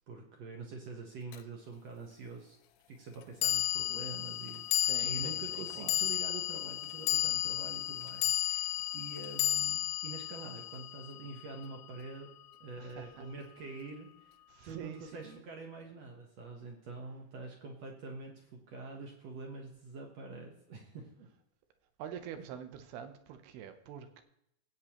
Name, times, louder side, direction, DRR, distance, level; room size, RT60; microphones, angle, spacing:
voice 1, 0.0-2.6 2.9-12.3 12.6-14.4 14.6-21.3, right 3 dB, 65° right, 1 dB, 1.7 m, -46 dB
sound 1, 1.3-1.4 3.4-11.8, left 12 dB, 85° left, 2.6 m, -33 dB
voice 2, 4.8-6.1 12.8-13.3 14.5-15.5 22.0-24.2, right 9 dB, 90° right, 8 dB, 3.0 m, -46 dB
16.5 x 8.3 x 3.0 m, 0.77 s
omnidirectional pair, 4.5 m